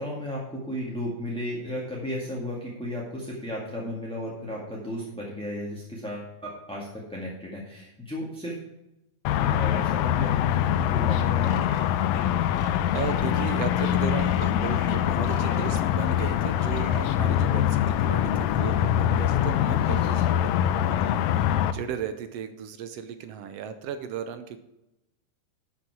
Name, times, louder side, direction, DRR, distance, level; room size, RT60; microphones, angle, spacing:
voice 1, 0.0-8.6 9.4-11.5 19.6-20.0 20.2-20.3, equal, 5° left, -4 dB, 1.2 m, -34 dB
sound 1, 9.3-21.7, left 11 dB, 80° left, 1.8 m, -24 dB
sound 2, 11.1-15.8 16.1-17.2, left 6 dB, 60° left, 1.4 m, -41 dB
voice 2, 12.5-24.6, right 8 dB, 75° right, 10 dB, 1.5 m, -36 dB
12.0 x 6.7 x 4.7 m, 0.91 s
omnidirectional pair, 3.5 m